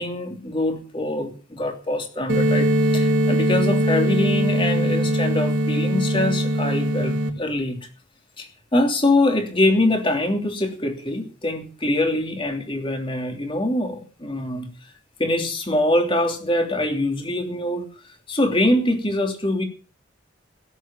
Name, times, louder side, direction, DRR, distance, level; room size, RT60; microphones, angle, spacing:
voice 1, 0.0-7.9 8.4-14.7 15.2-17.9 18.3-19.6, left 1 dB, 25° left, 4 dB, 3.0 m, -24 dB
sound 1, 2.3-7.3, right 1 dB, 70° right, 3.0 m, -21 dB
17.0 x 8.4 x 7.1 m, 0.38 s
head